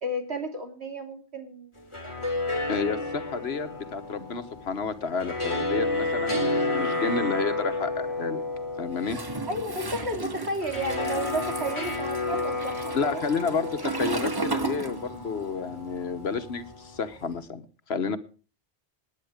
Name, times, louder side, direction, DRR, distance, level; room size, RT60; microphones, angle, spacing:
voice 1, 0.0-1.8 9.5-13.2, right 1 dB, 70° right, 5 dB, 3.3 m, -32 dB
sound 1, 1.8-16.9, left 2 dB, 25° left, 2.8 m, -31 dB
voice 2, 2.7-8.4 8.8-9.2 12.9-18.2, left 5 dB, 65° left, 12 dB, 1.4 m, -30 dB
Toilet flush, 9.0-15.5 15.7-17.3, right 3 dB, 20° right, 0.9 m, -35 dB
18.5 x 9.8 x 4.9 m, 0.38 s
omnidirectional pair, 1.1 m